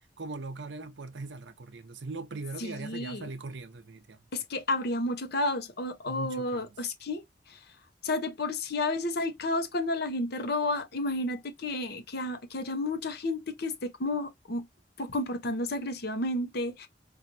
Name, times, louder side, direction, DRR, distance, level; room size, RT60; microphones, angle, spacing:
voice 1, 0.2-4.2 6.1-6.7, right 3 dB, 70° right, 0.7 m, -40 dB
voice 2, 2.6-3.3 4.3-7.6 8.0-14.7 15.0-16.9, left 2 dB, 60° left, 0.9 m, -31 dB
4.5 x 2.5 x 2.6 m
head